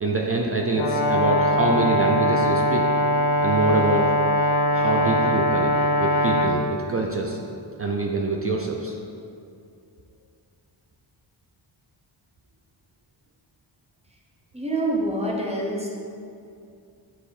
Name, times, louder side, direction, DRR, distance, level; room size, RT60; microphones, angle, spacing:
voice 1, 0.0-2.9 3.4-4.1 4.7-5.7 6.0-7.4 7.8-8.9, right 2 dB, 30° right, 0 dB, 0.5 m, -25 dB
Brass instrument, 0.7-6.6, equal, 85° left, 0.9 m, -21 dB
voice 2, 14.5-15.9, right 1 dB, 15° right, -2 dB, 1.0 m, -26 dB
8.8 x 3.1 x 4.8 m, 2.4 s
wide cardioid pair, 125°, 48 cm